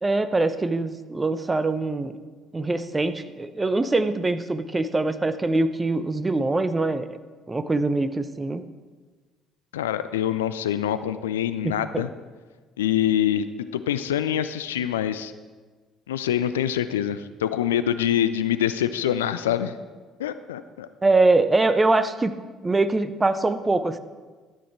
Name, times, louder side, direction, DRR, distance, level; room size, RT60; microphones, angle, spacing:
voice 1, 0.0-2.1 2.5-7.2 7.5-8.6 11.6-12.0 21.0-22.3 22.6-24.0, right 2 dB, 20° right, 11 dB, 0.8 m, -23 dB
voice 2, 9.7-12.1 12.8-13.5 13.7-15.3 16.1-19.8 20.2-20.9, left 10 dB, 75° left, 12 dB, 0.4 m, -25 dB
12.5 x 8.7 x 4.5 m, 1.4 s
figure-of-eight pair, 50°, 0 cm